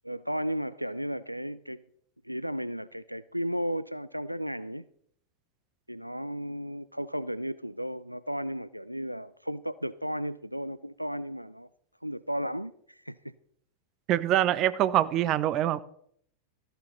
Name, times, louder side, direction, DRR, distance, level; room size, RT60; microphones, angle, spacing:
voice 1, 0.0-1.8 2.2-4.8 5.9-11.7 12.0-13.3, equal, 90° right, 0.4 m, -34 dB
voice 2, 14.1-15.8, right 12 dB, 35° right, 0.7 m, -24 dB
14.0 x 11.0 x 4.1 m
figure-of-eight pair, 90°, 0 cm